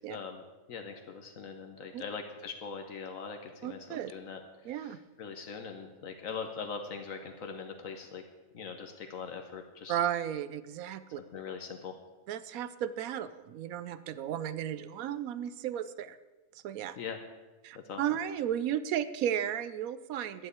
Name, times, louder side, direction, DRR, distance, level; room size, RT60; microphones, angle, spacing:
voice 1, 0.1-0.4 0.7-4.4 4.7-8.2 8.5-10.0 11.2-12.0 17.0-17.2 17.8-18.0, left 5 dB, 75° left, 4 dB, 1.3 m, -41 dB
voice 2, 3.6-4.1 4.6-5.0 9.9-11.2 12.3-16.2 16.6-17.0 17.6-20.5, right 10 dB, 90° right, 14 dB, 1.1 m, -34 dB
11.5 x 7.7 x 8.1 m, 1.2 s
omnidirectional pair, 1.4 m